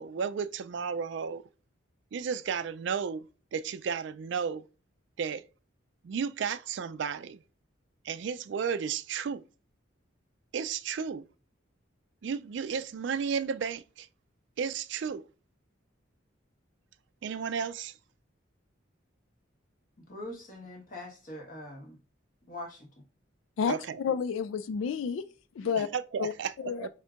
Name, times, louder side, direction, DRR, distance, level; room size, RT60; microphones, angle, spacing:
voice 1, 0.0-1.4 2.1-3.3 3.5-4.6 5.2-5.4 6.0-7.4 8.0-9.4 10.5-11.3 12.2-14.1 14.6-15.3 17.2-17.9 23.7-24.0 25.9-26.5 26.8-26.9, right 6 dB, 65° right, 0.3 m, -33 dB
voice 2, 20.1-22.0 22.4-22.9, left 1 dB, 45° left, 1.3 m, -43 dB
voice 3, 23.6-25.2 25.6-25.9 26.2-26.3 26.6-26.9, left 6 dB, 85° left, 0.3 m, -30 dB
4.4 x 3.6 x 2.4 m
head